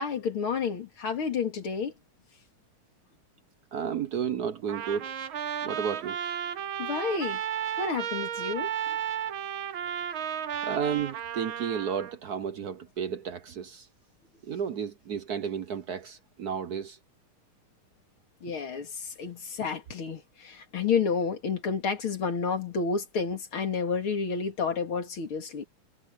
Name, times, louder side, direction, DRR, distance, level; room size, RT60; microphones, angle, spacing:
voice 1, 0.0-1.9 6.8-7.4 7.8-8.7 18.4-25.7, left 5 dB, 80° left, 3.3 m, -30 dB
voice 2, 3.7-5.1 5.6-6.2 10.6-13.9 14.4-17.0, right 7 dB, 60° right, 1.2 m, -32 dB
Trumpet, 4.7-12.1, right 9 dB, 75° right, 2.1 m, -33 dB
omnidirectional pair, 2.3 m